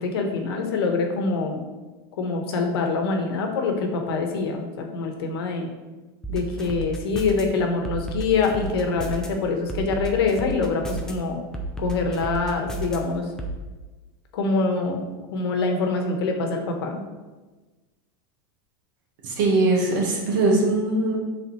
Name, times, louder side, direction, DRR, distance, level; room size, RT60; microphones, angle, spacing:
voice 1, 0.0-1.6 2.2-5.7 6.3-11.4 11.8-13.2 14.3-15.0 15.3-17.0, left 4 dB, 80° left, 3 dB, 1.1 m, -25 dB
sound 1, 6.2-7.4 7.8-9.3 9.7-11.1 11.5-13.0 13.4-13.5, right 2 dB, 5° left, 0.4 m, -31 dB
voice 2, 19.2-21.2, right 2 dB, 55° right, -1 dB, 1.4 m, -21 dB
8.4 x 3.7 x 3.1 m, 1.2 s
supercardioid pair, 175°, 13 cm